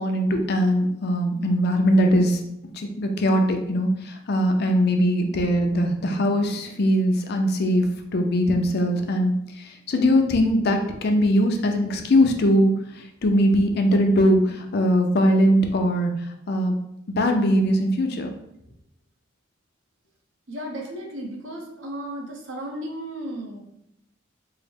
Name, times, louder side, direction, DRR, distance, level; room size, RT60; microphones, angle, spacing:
voice 1, 0.0-2.4 2.7-7.9 8.1-16.8 17.1-18.3, equal, 55° left, 4 dB, 0.5 m, -21 dB
voice 2, 20.5-23.6, right 1 dB, 75° right, 0 dB, 0.7 m, -34 dB
3.6 x 2.1 x 3.4 m, 0.77 s
head